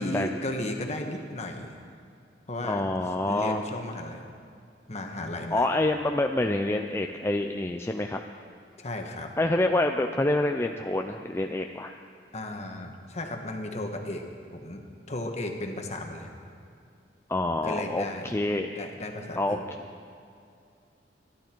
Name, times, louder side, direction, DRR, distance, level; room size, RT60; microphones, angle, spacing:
voice 1, 0.0-1.7 2.5-2.8 3.3-4.3 4.9-5.7 8.8-9.3 12.3-14.2 14.5-14.8 15.1-16.3 17.6-18.3 18.8-19.6, left 1 dB, 40° left, 3 dB, 1.5 m, -34 dB
voice 2, 2.6-3.6 5.5-8.2 9.4-11.9 17.3-18.8 19.4-19.6, left 2 dB, 15° left, 4 dB, 0.5 m, -27 dB
24.5 x 12.0 x 4.6 m, 2.5 s
head